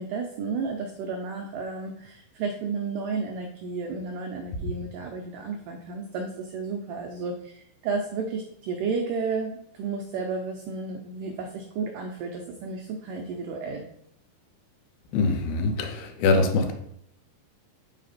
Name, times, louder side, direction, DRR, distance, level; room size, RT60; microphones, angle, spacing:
voice 1, 0.0-13.8, right 4 dB, 90° right, 3 dB, 1.8 m, -32 dB
voice 2, 15.1-16.7, left 3 dB, 90° left, 5 dB, 2.6 m, -23 dB
5.7 x 4.1 x 3.9 m, 0.72 s
omnidirectional pair, 4.4 m